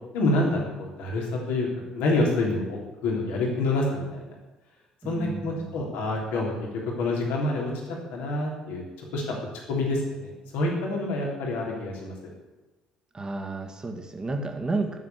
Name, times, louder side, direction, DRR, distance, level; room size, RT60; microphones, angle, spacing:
voice 1, 0.1-1.7 1.9-4.2 5.0-6.5 7.0-7.7 8.1-8.8 9.1-9.2 9.7-12.3, left 2 dB, 60° left, -1 dB, 3.3 m, -27 dB
voice 2, 5.0-5.7 13.1-15.0, right 3 dB, 25° right, 4 dB, 2.1 m, -31 dB
13.5 x 7.4 x 8.4 m, 1.1 s
figure-of-eight pair, 50°, 3 cm